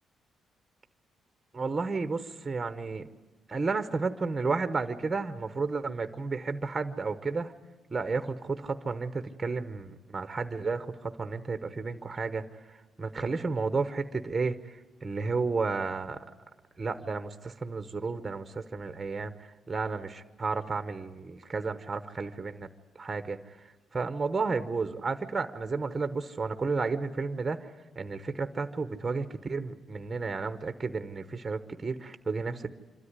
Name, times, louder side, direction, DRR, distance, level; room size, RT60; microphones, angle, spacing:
voice 1, 1.5-3.1 3.5-7.5 7.9-12.4 13.0-14.6 15.0-16.2 16.8-19.3 19.7-22.7 23.0-23.4 23.9-27.6 28.0-32.7, right 4 dB, 20° right, 9 dB, 0.9 m, -32 dB
26.0 x 13.0 x 9.7 m, 1.2 s
cardioid pair, 140°, 0 cm